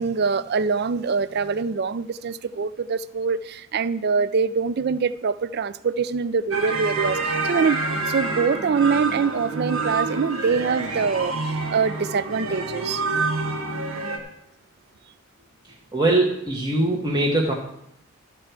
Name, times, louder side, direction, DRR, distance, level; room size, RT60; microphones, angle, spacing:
voice 1, 0.0-13.0, right 5 dB, 45° right, 0.4 m, -24 dB
sound 1, 6.5-14.2, right 3 dB, 70° right, 1.5 m, -27 dB
voice 2, 15.9-17.5, right 2 dB, 20° right, 1.1 m, -21 dB
13.0 x 4.5 x 8.0 m
head